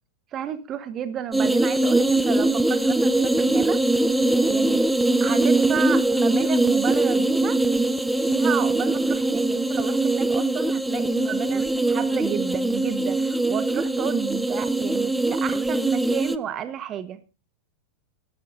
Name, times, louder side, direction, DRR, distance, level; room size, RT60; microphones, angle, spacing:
voice 1, 0.3-3.8 4.5-4.8 5.2-7.6 8.2-17.2, right 9 dB, 30° right, 13 dB, 1.2 m, -31 dB
sound 1, 1.3-16.4, right 2 dB, 5° right, 0.6 m, -22 dB
18.0 x 11.5 x 2.6 m, 0.31 s
figure-of-eight pair, 90°, 0 cm